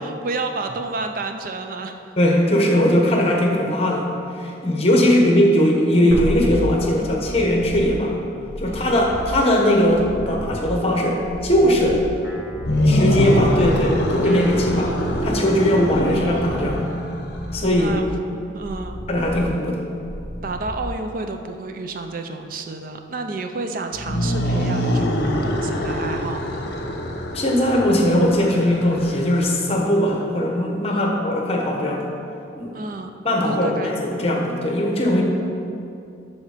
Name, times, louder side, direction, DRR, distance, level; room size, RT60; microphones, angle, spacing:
voice 1, 0.0-2.1 4.9-5.3 8.7-9.0 17.8-18.1 18.5-19.0 20.4-26.7 30.9-31.2 32.7-33.1 33.4-33.9, right 3 dB, 45° right, 6 dB, 0.4 m, -31 dB
voice 2, 2.2-8.2 8.6-12.0 12.8-14.9 15.2-16.9 17.5-17.9 19.1-19.8 27.3-32.1 32.5-32.7 33.2-33.7 34.0-35.2, left 1 dB, 30° left, 0 dB, 1.1 m, -19 dB
sound 1, 6.1-21.4 24.5-24.6, equal, 80° right, 1.4 m, -33 dB
Guitar, 10.2-11.7 12.2-16.1, equal, 10° right, 1.1 m, -42 dB
sound 2, 12.5-17.7 23.9-29.6, equal, 55° left, 0.9 m, -24 dB
12.5 x 4.2 x 4.9 m, 2.6 s
head